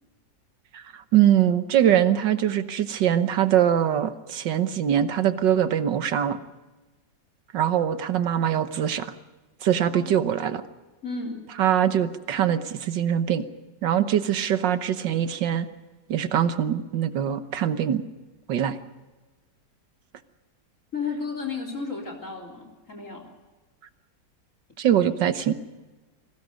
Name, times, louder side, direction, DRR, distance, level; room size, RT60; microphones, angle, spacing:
voice 1, 0.7-6.4 7.5-9.1 9.6-10.6 11.6-13.4 13.8-15.7 16.1-18.0 18.5-18.8 24.8-25.5, right 10 dB, 80° right, 11 dB, 1.8 m, -23 dB
voice 2, 11.0-11.5 20.9-23.3, left 4 dB, 45° left, 3 dB, 3.8 m, -33 dB
27.0 x 19.5 x 5.2 m, 1.2 s
omnidirectional pair, 1.9 m